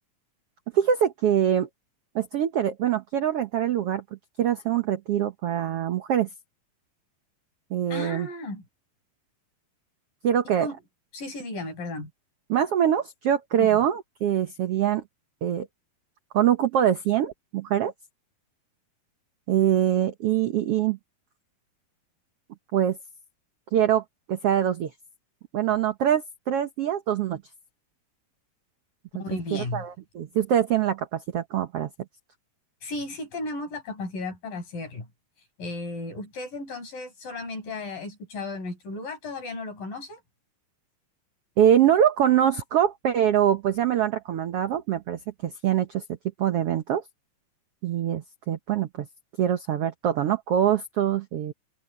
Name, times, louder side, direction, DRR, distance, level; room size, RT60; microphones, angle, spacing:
voice 1, 0.7-1.7 2.1-4.0 4.4-6.3 7.7-8.3 10.2-10.7 12.5-15.0 15.4-15.7 16.3-17.9 19.5-21.0 22.7-23.0 23.7-24.0 24.3-24.9 25.5-27.4 29.5-31.9 41.6-46.0 46.4-47.0 47.8-49.1 49.4-51.5, right 10 dB, 65° right, 1.5 m, -24 dB
voice 2, 7.9-8.6 10.6-10.7 11.1-12.1 13.6-13.8 29.2-29.9 32.8-35.1 35.6-40.2, left 2 dB, 70° left, 8.2 m, -34 dB
open air
omnidirectional pair, 4.0 m